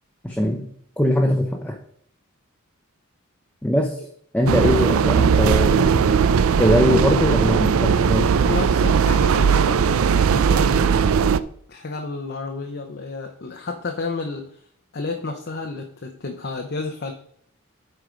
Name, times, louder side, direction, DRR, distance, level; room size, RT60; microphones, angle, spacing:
voice 1, 0.2-0.7 1.0-1.8 3.6-4.0 4.3-6.2 6.6-8.3, left 1 dB, 5° left, 2 dB, 0.7 m, -21 dB
sound 1, 4.5-11.4, right 6 dB, 75° right, 0.4 m, -18 dB
voice 2, 8.4-10.9 11.7-14.6 14.9-17.1, left 3 dB, 50° left, 4 dB, 0.7 m, -31 dB
8.4 x 4.7 x 5.1 m, 0.63 s
head